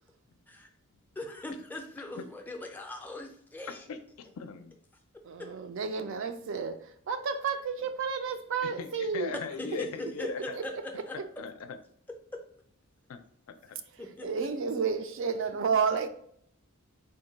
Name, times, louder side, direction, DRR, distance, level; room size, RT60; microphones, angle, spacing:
voice 1, 1.2-3.8 5.4-5.5 9.6-11.2 12.3-12.4 14.0-14.3, left 1 dB, 10° left, 0.4 m, -40 dB
voice 2, 3.9-4.8 8.8-10.6 11.1-11.8 13.1-13.2 13.5-13.8, left 6 dB, 70° left, 0.4 m, -40 dB
voice 3, 5.2-9.4 10.2-10.3 10.5-10.6 11.2-11.3 13.9-16.1, right 5 dB, 60° right, 0.4 m, -31 dB
3.8 x 2.2 x 3.8 m
head